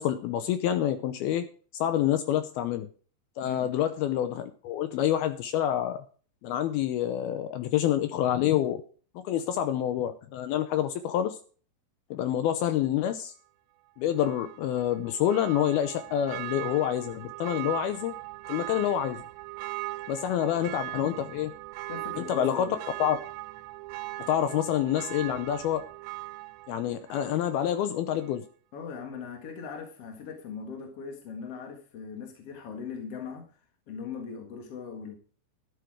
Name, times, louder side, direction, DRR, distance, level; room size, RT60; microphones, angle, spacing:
voice 1, 0.0-1.5 1.7-2.9 3.4-6.0 6.4-8.8 9.2-11.4 12.1-13.3 14.0-18.2 18.5-19.2 20.1-21.5 22.2-22.7 23.0-23.2 24.3-25.8 26.7-28.5, left 11 dB, 80° left, 10 dB, 2.3 m, -27 dB
voice 2, 3.4-3.7 21.9-22.8 28.7-33.6 33.9-35.1, left 6 dB, 50° left, 4 dB, 1.8 m, -39 dB
Church bell, 14.2-27.8 28.2-28.3, right 19 dB, 80° right, 2.6 m, -40 dB
12.5 x 8.9 x 4.7 m, 0.42 s
omnidirectional pair, 5.2 m